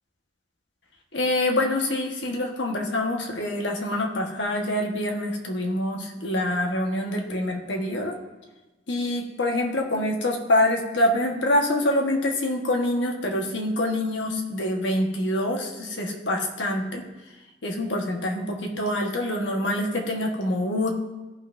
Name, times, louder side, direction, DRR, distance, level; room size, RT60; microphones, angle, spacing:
voice 1, 1.1-8.2 8.9-17.0 17.6-20.9, left 1 dB, 90° left, 1 dB, 1.3 m, -25 dB
14.5 x 5.7 x 2.6 m, 1.1 s
head